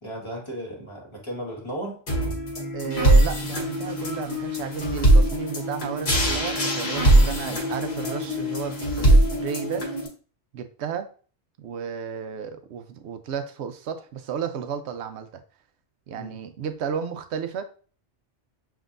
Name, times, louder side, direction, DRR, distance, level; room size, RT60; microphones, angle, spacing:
voice 1, 0.0-2.0 16.2-16.4, right 1 dB, 25° left, -2 dB, 1.4 m, -35 dB
sound 1, 2.1-10.1, right 1 dB, 65° left, 1.6 m, -21 dB
voice 2, 2.7-9.8 10.5-11.1 11.6-15.4 16.1-17.6, right 7 dB, 70° right, 9 dB, 0.9 m, -33 dB
7.4 x 2.7 x 2.5 m, 0.39 s
omnidirectional pair, 1.2 m